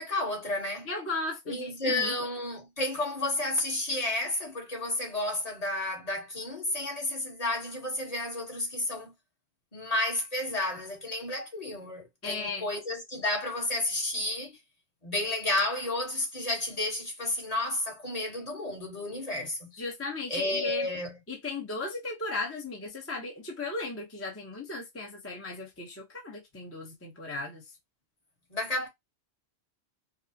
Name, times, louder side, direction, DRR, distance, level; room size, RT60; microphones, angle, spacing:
voice 1, 0.0-0.9 1.5-9.1 9.7-14.6 15.0-19.7 20.3-21.2 28.5-28.9, left 2 dB, 35° left, 1.3 m, -31 dB
voice 2, 0.9-2.2 12.2-12.7 19.7-20.9 21.3-27.6, left 3 dB, 15° left, 0.7 m, -36 dB
5.0 x 2.0 x 2.7 m
omnidirectional pair, 1.1 m